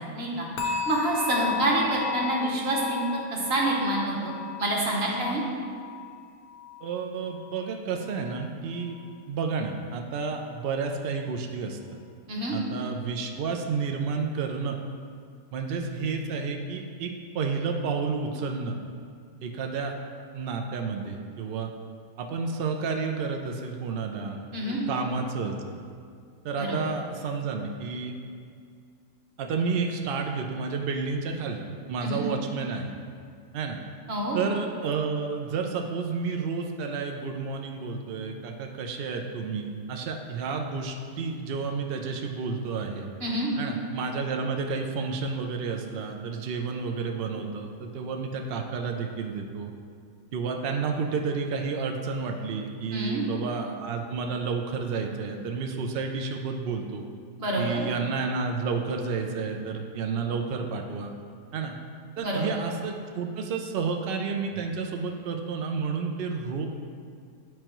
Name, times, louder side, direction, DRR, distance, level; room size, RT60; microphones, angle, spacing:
voice 1, 0.1-3.1 3.3-4.3 4.6-5.4 12.3-12.5 24.5-24.8 26.6-26.8 32.0-32.2 34.1-34.4 43.2-43.5 52.9-53.2 57.4-57.8 62.2-62.5, right 1 dB, 45° right, -2 dB, 1.2 m, -27 dB
sound 1, 0.6-7.6 7.9-8.3 8.8-8.9, left 7 dB, 85° left, 1.2 m, -35 dB
voice 2, 6.8-8.9 9.3-11.8 12.5-14.8 15.5-18.7 19.4-19.9 20.3-21.7 22.2-25.8 26.4-28.1 29.4-31.6 31.9-32.9 33.5-33.8 34.3-43.1 43.6-49.7 50.3-57.0 57.6-61.1 61.5-61.7 62.2-66.7, right 5 dB, 80° right, 3 dB, 0.5 m, -31 dB
9.3 x 4.4 x 3.0 m, 2.2 s
omnidirectional pair, 1.5 m